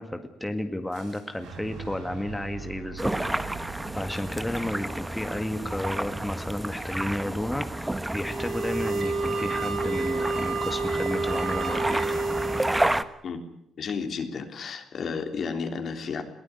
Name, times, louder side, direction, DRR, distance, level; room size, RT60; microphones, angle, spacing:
voice 1, 0.0-3.1 3.4-12.0, left 1 dB, 10° left, 6 dB, 1.9 m, -32 dB
Fire / Explosion, 0.9-6.8, right 5 dB, 85° right, 5.2 m, -44 dB
sound 1, 3.0-13.0, right 1 dB, 10° right, 1.2 m, -31 dB
sound 2, 8.1-12.9, right 3 dB, 40° right, 5.1 m, -29 dB
voice 2, 13.8-16.2, left 5 dB, 55° left, 5 dB, 3.5 m, -32 dB
22.0 x 16.0 x 9.8 m, 0.76 s
cardioid pair, 90°, 0 cm